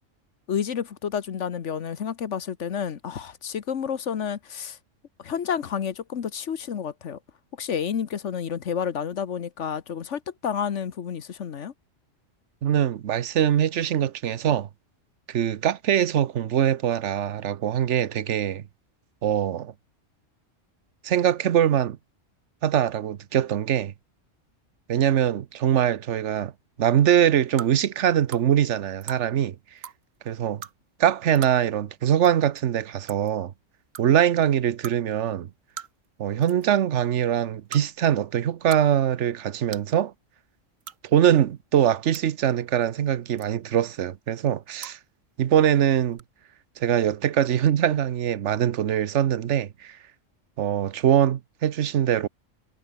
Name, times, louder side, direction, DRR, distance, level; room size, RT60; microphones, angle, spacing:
voice 1, 0.5-4.8 5.2-7.2 7.6-11.7, left 8 dB, 65° left, 1.3 m, -30 dB
voice 2, 12.6-14.7 15.3-18.6 19.2-19.7 21.0-22.0 22.6-23.9 24.9-26.5 26.8-29.5 30.3-30.6 31.0-33.5 34.0-35.5 36.2-40.1 41.0-45.0 45.4-46.2 46.8-50.0 50.6-52.3, right 10 dB, 65° right, 1.1 m, -22 dB
sound 1, 27.6-27.7 28.3-28.4 29.0-29.2 29.8-30.0 30.6-30.7 31.4-31.5 32.2-32.3 32.6-32.7 33.1-33.3 33.9-34.0 34.8-35.0 35.8-36.1 36.4-36.7 37.7-37.8 38.5-38.8 39.1-39.2 39.7-39.9 40.8-41.0 41.8-42.2 43.4-43.7 44.8-45.0 46.1-46.2, right 8 dB, 85° right, 1.6 m, -39 dB
omnidirectional pair, 1.3 m